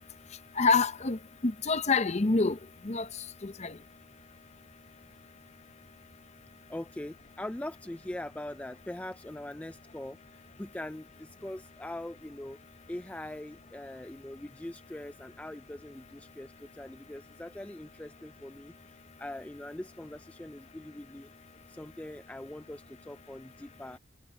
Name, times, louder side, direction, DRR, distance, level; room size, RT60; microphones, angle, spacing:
voice 1, 0.6-2.6 2.8-3.1 3.4-3.7, left 4 dB, 35° left, 0.7 m, -27 dB
voice 2, 6.7-12.6 12.9-21.3 21.7-24.0, left 1 dB, 5° left, 0.3 m, -42 dB
head